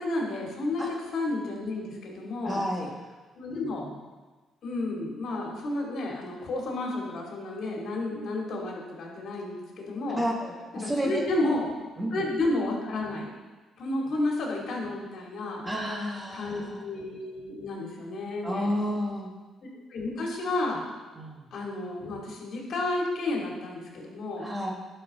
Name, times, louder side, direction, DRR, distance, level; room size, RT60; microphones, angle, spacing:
voice 1, 0.0-2.6 3.3-3.8 4.6-10.2 10.8-11.7 12.1-13.3 13.8-15.6 16.3-18.7 19.9-20.9 21.5-24.5, left 2 dB, 65° left, -2 dB, 2.5 m, -31 dB
voice 2, 2.4-2.9 3.5-4.0 10.1-11.6 12.0-12.2 15.6-16.8 18.4-19.3 21.1-21.5 24.4-24.7, equal, 15° right, -1 dB, 1.7 m, -31 dB
11.0 x 6.0 x 3.7 m, 1.3 s
cardioid pair, 90°, 0 cm